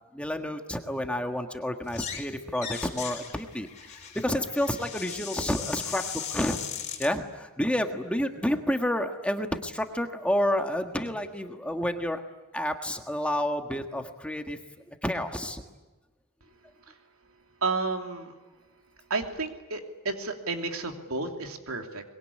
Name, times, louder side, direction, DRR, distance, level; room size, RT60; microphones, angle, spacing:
voice 1, 0.1-6.0 6.3-6.6 7.0-12.2 12.5-14.6 15.0-15.6, left 1 dB, 5° left, 5 dB, 1.5 m, -29 dB
sound 1, 1.8-2.3 2.5-7.1, left 8 dB, 35° left, 4.3 m, -38 dB
voice 2, 17.6-18.3 19.1-22.0, right 3 dB, 85° right, 4 dB, 3.0 m, -31 dB
24.5 x 22.0 x 9.9 m, 1.2 s
head